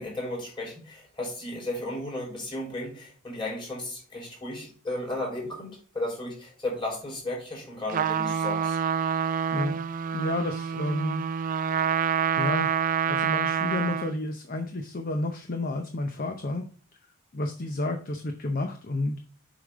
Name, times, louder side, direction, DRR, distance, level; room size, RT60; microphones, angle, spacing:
voice 1, 0.0-8.8, left 1 dB, 25° left, -2 dB, 3.6 m, -34 dB
Trumpet, 7.9-14.2, right 7 dB, 40° right, 0.4 m, -27 dB
voice 2, 10.1-11.2 11.8-12.1 12.4-16.6 17.3-19.2, left 2 dB, 45° left, 5 dB, 0.7 m, -31 dB
7.5 x 5.0 x 3.6 m, 0.43 s
head